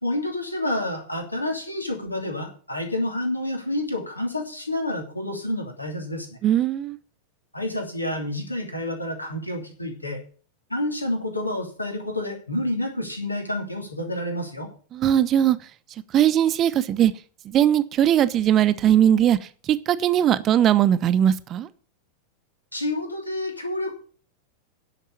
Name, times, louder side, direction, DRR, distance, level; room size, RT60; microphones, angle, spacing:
voice 1, 0.0-6.4 7.5-10.2 10.7-14.7 22.7-23.9, left 1 dB, 85° left, 2 dB, 2.8 m, -29 dB
voice 2, 6.4-7.0 14.9-15.6 16.1-17.1 17.4-19.4 19.7-21.7, right 10 dB, 30° right, 14 dB, 0.8 m, -19 dB
10.0 x 6.5 x 8.4 m, 0.41 s
figure-of-eight pair, 90°, 0 cm